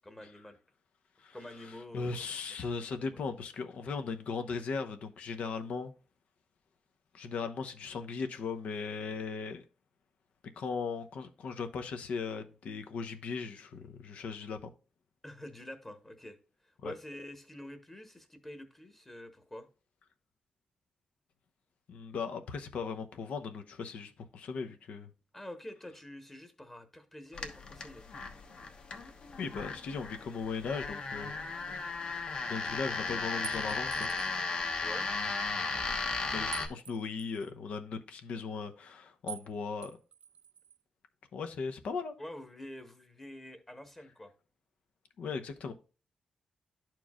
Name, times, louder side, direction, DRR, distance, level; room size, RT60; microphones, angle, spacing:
voice 1, 0.0-0.6 1.3-2.6 3.1-3.2 15.2-16.4 16.6-19.7 25.3-28.0 34.8-35.1 42.2-44.3, left 1 dB, 15° left, 1.0 m, -47 dB
voice 2, 1.9-5.9 7.1-9.7 10.6-14.7 16.8-16.9 21.9-25.1 29.4-32.0 32.5-34.1 36.3-40.0 41.3-42.1 45.2-45.7, left 5 dB, 75° left, 0.8 m, -38 dB
sound 1, 27.3-36.7, left 4 dB, 45° left, 1.1 m, -36 dB
sound 2, 33.4-34.4 36.5-37.5 39.3-39.5 39.8-40.8, right 7 dB, 65° right, 0.3 m, -46 dB
11.5 x 4.6 x 2.3 m
wide cardioid pair, 140°, 2 cm